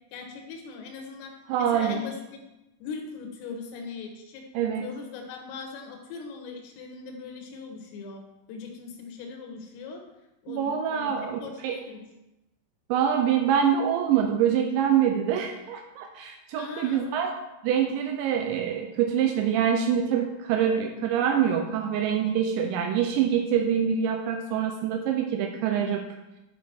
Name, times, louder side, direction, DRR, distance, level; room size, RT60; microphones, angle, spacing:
voice 1, 0.1-1.3 1.7-2.4 2.8-8.2 8.5-10.0 10.4-12.1 16.6-17.1, left 4 dB, 80° left, 2 dB, 3.8 m, -40 dB
voice 2, 1.5-2.1 4.5-4.9 10.5-11.8 12.9-17.3 17.6-26.0, right 8 dB, 90° right, 3 dB, 2.6 m, -25 dB
11.5 x 5.2 x 4.4 m, 0.97 s
omnidirectional pair, 5.8 m